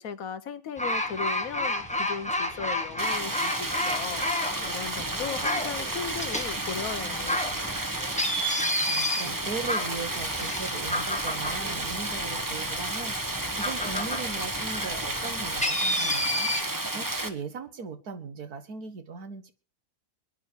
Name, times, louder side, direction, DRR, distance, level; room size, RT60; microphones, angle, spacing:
voice 1, 0.0-4.2 4.6-7.6, left 7 dB, 70° left, 1.4 m, -37 dB
sound 1, 0.8-16.6, left 1 dB, 5° left, 1.4 m, -31 dB
Stream, 3.0-17.3, right 2 dB, 15° right, 1.1 m, -32 dB
voice 2, 8.8-19.5, right 4 dB, 80° right, 2.0 m, -38 dB
23.0 x 10.5 x 4.6 m
omnidirectional pair, 1.6 m